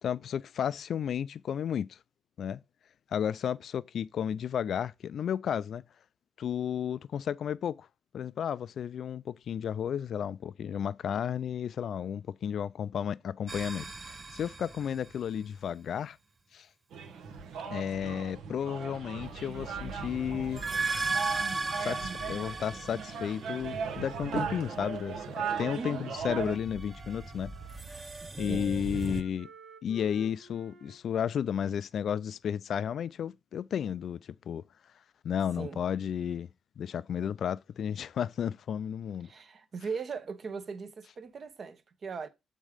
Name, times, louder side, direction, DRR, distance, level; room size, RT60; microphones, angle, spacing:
voice 1, 0.0-2.0 2.4-2.6 3.1-5.8 6.4-7.9 8.1-16.2 16.5-16.7 17.7-20.6 21.8-27.5 28.4-29.5 29.8-34.6 35.2-36.5 36.8-39.3, left 8 dB, 60° left, 0.3 m, -33 dB
sound 1, 13.5-15.4 19.3-23.8 26.3-29.2, right 3 dB, 25° right, 0.7 m, -37 dB
sound 2, 16.9-26.6, right 6 dB, 85° right, 1.1 m, -38 dB
Wind instrument woodwind instrument, 22.9-26.5 26.9-31.0, right 4 dB, 65° right, 1.4 m, -51 dB
voice 2, 25.7-26.1 28.5-28.7 35.6-35.8 39.2-42.3, right 5 dB, 45° right, 1.0 m, -39 dB
7.3 x 3.7 x 4.9 m
cardioid pair, 90°, 0 cm